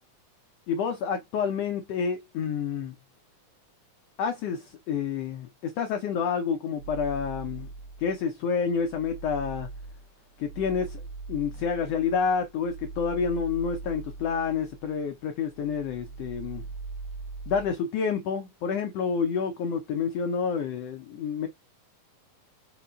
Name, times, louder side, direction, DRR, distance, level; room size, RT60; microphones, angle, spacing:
voice 1, 0.7-2.9 4.2-7.7 8.0-9.7 10.4-11.0 11.3-16.6 17.5-21.5, left 6 dB, 85° left, 1.4 m, -29 dB
sound 1, 6.8-8.2 8.6-15.1 15.5-17.7, right 4 dB, 65° right, 1.4 m, -41 dB
5.1 x 2.3 x 3.9 m
omnidirectional pair, 3.6 m